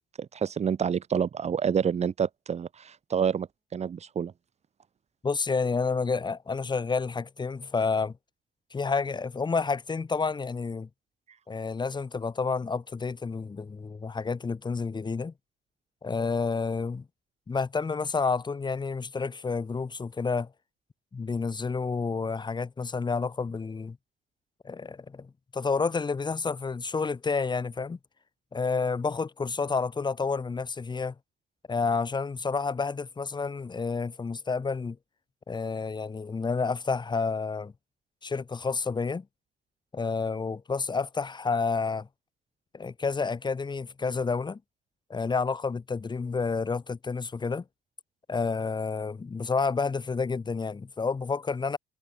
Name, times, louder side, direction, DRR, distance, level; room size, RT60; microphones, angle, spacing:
voice 1, 0.2-3.5 3.7-4.3, right 7 dB, 40° right, 3.7 m, -28 dB
voice 2, 5.2-8.1 8.7-10.9 11.5-15.3 16.0-17.1 17.5-20.5 21.1-24.0 24.6-28.0 28.5-31.1 31.7-35.0 35.5-37.7 38.2-39.3 39.9-42.1 42.7-44.6 45.1-47.6 48.3-51.8, left 4 dB, 25° left, 7.3 m, -30 dB
cardioid pair, 110°, 17 cm